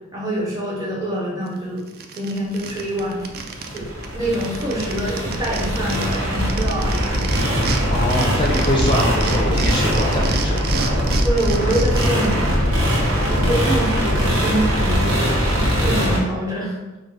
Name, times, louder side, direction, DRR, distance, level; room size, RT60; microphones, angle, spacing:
voice 1, 0.1-3.3 3.7-7.7 11.2-12.6 13.3-16.8, right 1 dB, 15° right, -5 dB, 0.9 m, -26 dB
sound 1, 1.5-1.6 1.9-4.1 4.3-7.8 8.1-12.3, right 5 dB, 45° right, 0.3 m, -29 dB
sound 2, 2.9-16.2, equal, 85° right, 1.0 m, -21 dB
voice 2, 7.9-10.6, left 1 dB, 25° left, -3 dB, 0.5 m, -23 dB
4.7 x 2.2 x 3.2 m, 1.1 s
head